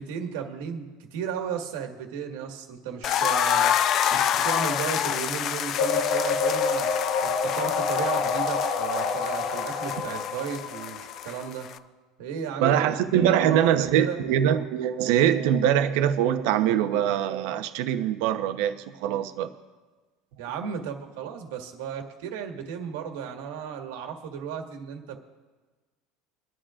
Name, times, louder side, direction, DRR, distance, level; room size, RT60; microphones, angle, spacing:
voice 1, 0.0-3.7 4.1-6.9 7.2-11.7 12.2-14.2 20.4-25.2, right 7 dB, 85° right, 4 dB, 1.7 m, -34 dB
sound 1, 3.0-11.8, left 9 dB, 35° left, 0.4 m, -28 dB
sound 2, 5.8-11.5, left 5 dB, 55° left, 1.2 m, -27 dB
voice 2, 12.6-18.7 19.0-19.5, right 10 dB, 65° right, 8 dB, 0.9 m, -23 dB
24.5 x 11.5 x 2.5 m, 1.3 s
cardioid pair, 165°, 0 cm